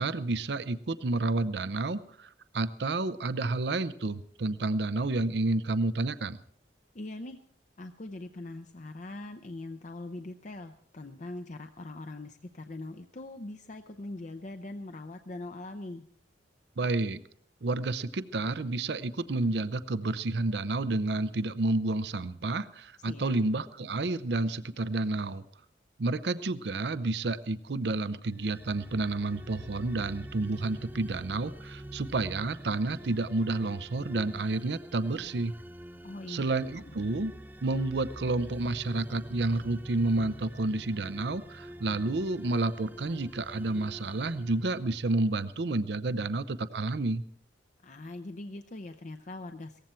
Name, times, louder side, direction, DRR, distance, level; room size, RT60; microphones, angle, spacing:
voice 1, 0.0-6.4 16.8-17.2 17.6-25.4 26.0-35.5 36.3-37.3 37.6-47.2, right 2 dB, 65° right, 14 dB, 0.6 m, -30 dB
voice 2, 6.9-7.4 7.8-16.0 23.1-23.4 36.0-36.5 36.7-36.9 47.8-49.8, left 2 dB, 45° left, 6 dB, 0.7 m, -42 dB
sound 1, 28.3-45.4, right 1 dB, 10° right, 0.5 m, -46 dB
18.0 x 15.0 x 4.4 m, 0.65 s
head